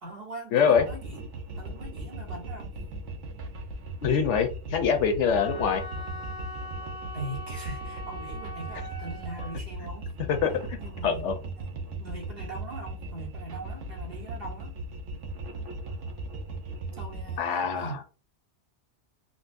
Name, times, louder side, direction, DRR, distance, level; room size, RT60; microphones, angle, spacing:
voice 1, 0.0-1.3 1.6-2.7 7.1-10.1 10.8-14.8 16.9-18.0, right 2 dB, 55° right, 1.2 m, -41 dB
voice 2, 0.5-0.8 4.0-5.8 10.3-10.8 11.0-11.3 17.4-17.9, left 7 dB, 75° left, 0.9 m, -24 dB
sound 1, 0.7-17.4, right 2 dB, 75° right, 1.1 m, -38 dB
Wind instrument woodwind instrument, 5.4-9.6, equal, 35° right, 1.9 m, -41 dB
3.9 x 2.1 x 2.5 m
omnidirectional pair, 1.3 m